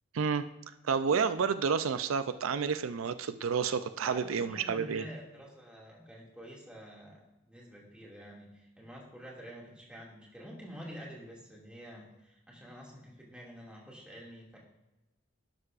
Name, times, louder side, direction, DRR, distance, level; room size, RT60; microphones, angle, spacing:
voice 1, 0.8-5.0, right 6 dB, 90° right, 11 dB, 0.5 m, -30 dB
voice 2, 4.0-14.6, equal, 5° right, -4 dB, 2.3 m, -48 dB
11.5 x 11.5 x 2.5 m, 1.0 s
head